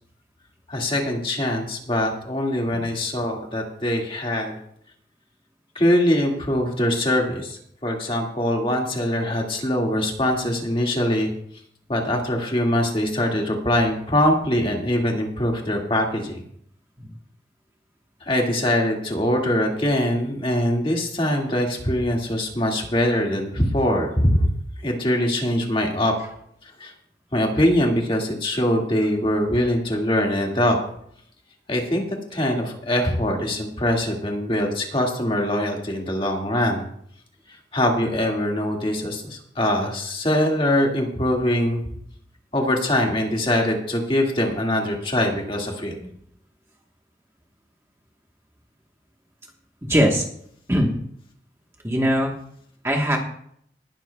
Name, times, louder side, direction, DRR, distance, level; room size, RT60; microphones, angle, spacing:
voice 1, 0.7-4.6 5.8-11.3 11.9-16.4 18.2-24.5 24.8-26.1 26.8-26.9 27.3-30.8 31.7-32.0 32.3-36.8 37.7-41.8 42.5-45.9, left 1 dB, 30° left, 0 dB, 2.0 m, -23 dB
voice 2, 49.9-50.2 50.7-50.9 51.8-52.3 52.8-53.2, equal, 15° right, 0 dB, 1.2 m, -20 dB
19.0 x 12.0 x 2.3 m, 0.67 s
head